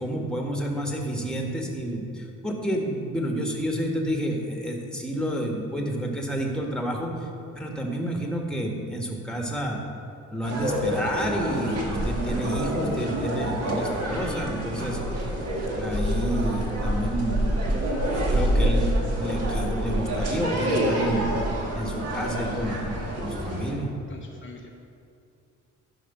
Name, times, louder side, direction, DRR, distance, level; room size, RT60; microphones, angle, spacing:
voice 1, 0.0-7.3 7.5-9.8 10.3-15.0 15.7-17.7 18.1-18.9 19.1-21.3 21.7-22.8 23.2-23.9, equal, 5° left, 1 dB, 1.5 m, -29 dB
sound 1, 10.4-23.7, right 1 dB, 55° right, 2.1 m, -27 dB
voice 2, 24.1-24.7, left 5 dB, 40° left, 0 dB, 0.8 m, -45 dB
11.0 x 5.2 x 5.4 m, 2.5 s
cardioid pair, 90°, 30 cm